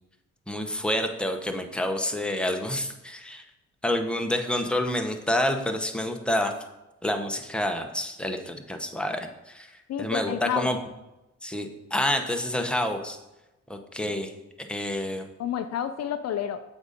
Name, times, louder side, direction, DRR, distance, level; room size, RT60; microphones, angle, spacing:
voice 1, 0.5-3.4 3.8-6.6 7.0-9.7 10.0-10.8 11.4-13.2 13.7-14.3 14.6-15.2, left 1 dB, 5° left, 5 dB, 0.8 m, -28 dB
voice 2, 9.9-10.7 14.0-14.1 15.4-16.6, left 9 dB, 55° left, 10 dB, 0.4 m, -30 dB
7.9 x 2.7 x 5.0 m, 0.99 s
supercardioid pair, 55°, 31 cm